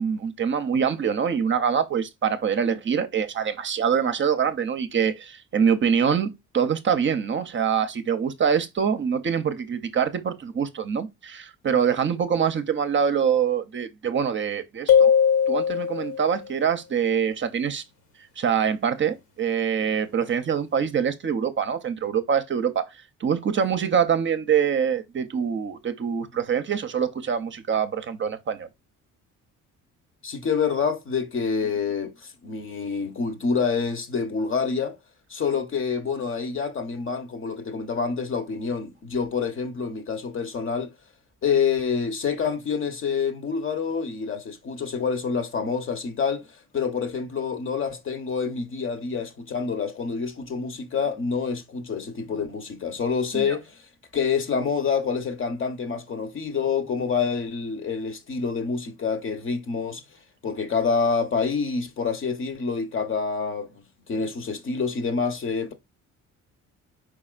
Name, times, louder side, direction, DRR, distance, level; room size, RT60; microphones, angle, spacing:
voice 1, 0.0-6.3 6.5-15.1 15.5-17.8 18.4-22.8 23.2-28.7 53.3-53.6, right 7 dB, 40° right, 0.6 m, -24 dB
sound 1, 14.9-16.4, left 7 dB, 80° left, 1.6 m, -19 dB
voice 2, 30.2-35.0 35.3-40.9 41.4-53.9 54.1-60.0 60.4-65.7, left 5 dB, 40° left, 0.9 m, -27 dB
4.8 x 4.1 x 2.4 m
cardioid pair, 110°, 31 cm